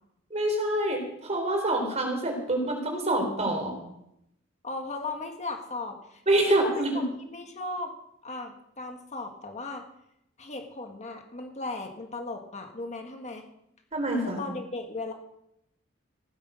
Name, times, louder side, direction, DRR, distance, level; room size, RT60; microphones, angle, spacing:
voice 1, 0.3-3.7 6.3-6.9 13.9-14.4, right 1 dB, 35° right, 2 dB, 4.0 m, -26 dB
voice 2, 4.6-7.9 8.2-9.8 10.4-13.5 14.2-15.1, left 3 dB, 35° left, 4 dB, 1.7 m, -37 dB
16.0 x 10.0 x 6.5 m, 0.79 s
head